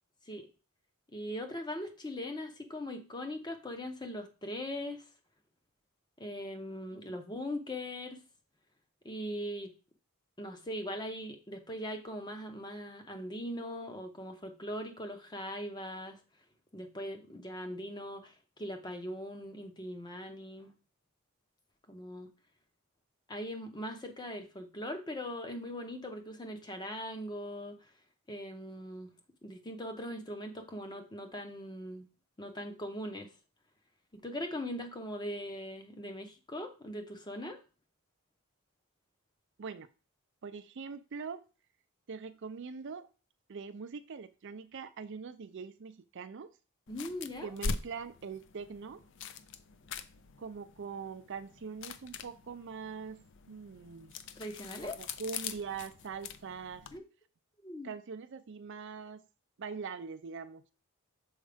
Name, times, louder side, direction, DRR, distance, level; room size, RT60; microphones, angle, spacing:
voice 1, 1.1-5.0 6.2-8.2 9.0-9.7 10.4-16.2 16.7-18.3 18.6-20.7 21.9-22.3 23.3-27.8 28.3-29.1 29.4-32.1 32.4-33.3 34.1-37.6 46.9-47.5 54.4-55.0 56.9-57.0 57.6-57.9, equal, 20° left, 6 dB, 0.8 m, -40 dB
voice 2, 40.4-41.5 42.1-43.1 43.5-46.5 47.4-49.0 50.4-53.2 53.5-54.1 54.8-56.9 57.8-59.2 59.6-60.6, right 5 dB, 55° right, 11 dB, 0.4 m, -42 dB
sound 1, 46.9-57.0, left 5 dB, 55° left, 0.4 m, -43 dB
6.3 x 4.6 x 3.4 m, 0.33 s
head